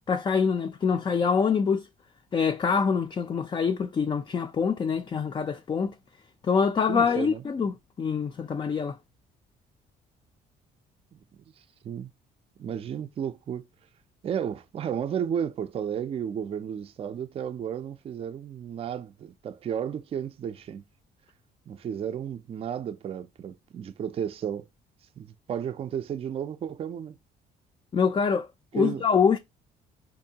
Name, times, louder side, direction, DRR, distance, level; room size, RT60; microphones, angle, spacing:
voice 1, 0.1-1.9 2.3-5.9 6.4-9.0 27.9-28.5 28.7-29.4, left 6 dB, 25° left, 0.4 m, -25 dB
voice 2, 6.9-7.4 11.8-12.1 12.6-13.7 14.2-20.8 21.7-24.7 25.2-27.2 28.8-29.0, right 8 dB, 35° right, 0.4 m, -33 dB
4.5 x 2.6 x 2.7 m
cardioid pair, 110°, 17 cm